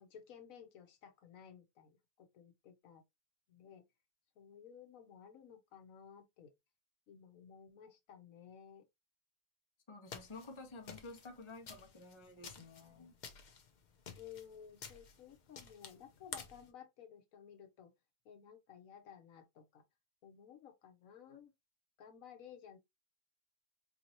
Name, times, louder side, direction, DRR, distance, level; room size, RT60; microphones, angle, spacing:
voice 1, 0.0-3.0 3.5-3.8 4.4-6.5 7.1-8.9 14.2-17.9 18.2-19.8 20.2-21.5 22.0-22.8, left 8 dB, 75° left, 1.2 m, -56 dB
voice 2, 9.9-13.1, left 3 dB, 25° left, 0.9 m, -51 dB
sound 1, 10.1-16.7, left 6 dB, 45° left, 0.6 m, -52 dB
4.5 x 2.8 x 2.9 m
omnidirectional pair, 1.4 m